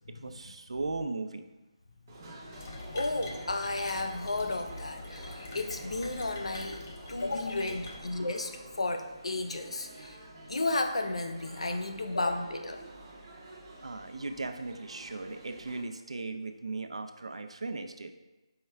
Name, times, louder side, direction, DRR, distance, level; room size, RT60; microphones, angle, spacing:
voice 1, 0.1-1.5 13.8-18.1, right 3 dB, 85° right, 7 dB, 0.4 m, -37 dB
sound 1, 2.1-15.8, right 2 dB, 20° right, 0.7 m, -50 dB
sound 2, 2.5-8.1, left 2 dB, 25° left, 0.5 m, -44 dB
voice 2, 2.9-6.8 7.1-10.2 10.5-12.8, left 2 dB, 85° left, 6 dB, 0.5 m, -33 dB
4.6 x 3.2 x 3.4 m, 1.1 s
hypercardioid pair, 175°, 3 cm